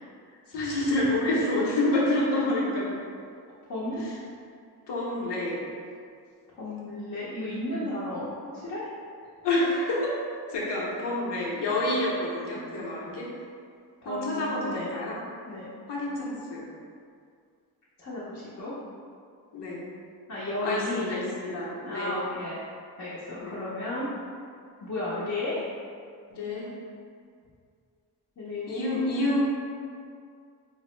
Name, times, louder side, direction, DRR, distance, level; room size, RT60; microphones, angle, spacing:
voice 1, 0.5-2.9 4.0-4.1 4.9-5.6 9.4-10.2 10.5-13.3 14.0-15.2 15.9-16.6 19.5-19.8 20.6-22.2 23.3-23.6 26.3-26.7 28.7-29.4, left 1 dB, 85° left, -5 dB, 0.9 m, -28 dB
voice 2, 3.7-4.0 6.5-8.9 14.0-14.9 15.5-15.7 18.0-18.7 20.3-21.1 21.8-22.6 23.0-24.1 24.8-25.7 28.4-29.2, left 1 dB, 40° left, -9 dB, 0.7 m, -33 dB
4.1 x 2.0 x 3.1 m, 2.2 s
wide cardioid pair, 120°, 41 cm